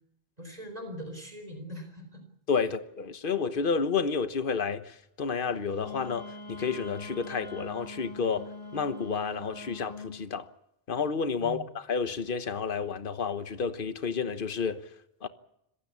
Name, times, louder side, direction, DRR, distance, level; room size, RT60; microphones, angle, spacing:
voice 1, 0.4-2.2 2.6-2.7 11.4-11.7, equal, 40° right, 4.3 m, -41 dB
voice 2, 2.5-10.5 10.9-14.8 15.2-15.3, left 5 dB, 55° left, 1.3 m, -30 dB
Wind instrument woodwind instrument, 5.8-10.2, left 2 dB, 80° left, 4.2 m, -43 dB
26.5 x 15.5 x 8.5 m
omnidirectional pair, 1.0 m